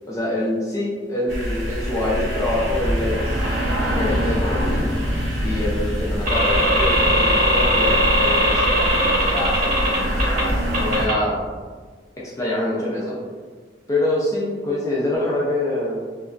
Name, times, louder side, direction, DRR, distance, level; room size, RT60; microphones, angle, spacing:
voice 1, 0.1-3.4 3.9-4.9 5.4-9.9 10.8-11.5 12.2-13.2 13.9-16.0, left 1 dB, 20° left, -7 dB, 0.3 m, -25 dB
sound 1, 1.3-11.1, equal, 80° right, 0.8 m, -24 dB
sound 2, 6.3-10.4 10.7-11.1, equal, 55° right, 0.9 m, -19 dB
2.9 x 2.2 x 2.4 m, 1.5 s
head